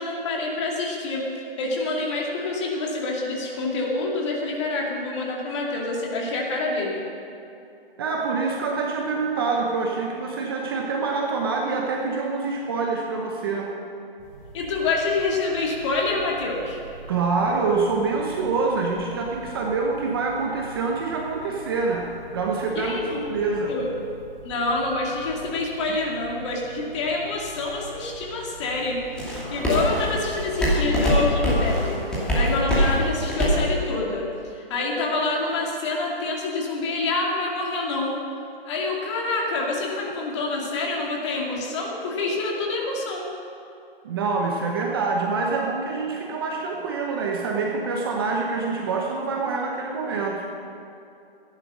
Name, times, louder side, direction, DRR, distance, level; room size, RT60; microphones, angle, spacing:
voice 1, 0.0-7.0 14.5-16.8 22.7-23.2 23.7-23.9 24.4-29.2 29.5-38.2 38.6-43.3, left 3 dB, 30° left, -2 dB, 2.4 m, -27 dB
voice 2, 8.0-13.7 17.1-23.8 44.0-50.4, right 4 dB, 25° right, 0 dB, 0.9 m, -26 dB
sound 1, 14.2-33.7, equal, 5° left, 2.4 m, -30 dB
15.0 x 11.0 x 6.3 m, 2.7 s
hypercardioid pair, 160°, 30 cm